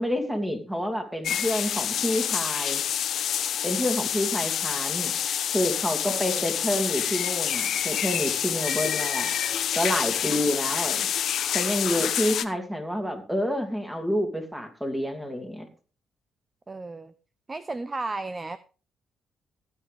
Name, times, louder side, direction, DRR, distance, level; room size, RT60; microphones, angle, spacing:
voice 1, 0.0-2.8 3.6-5.1 5.5-9.3 9.7-11.1 11.5-15.7, equal, 5° right, 5 dB, 2.8 m, -28 dB
sound 1, 1.2-12.4, left 9 dB, 70° left, 1.0 m, -27 dB
voice 2, 6.0-6.7 16.7-17.1 17.5-18.6, right 3 dB, 25° right, 13 dB, 0.6 m, -34 dB
16.0 x 9.5 x 3.6 m, 0.36 s
cardioid pair, 90°, 0 cm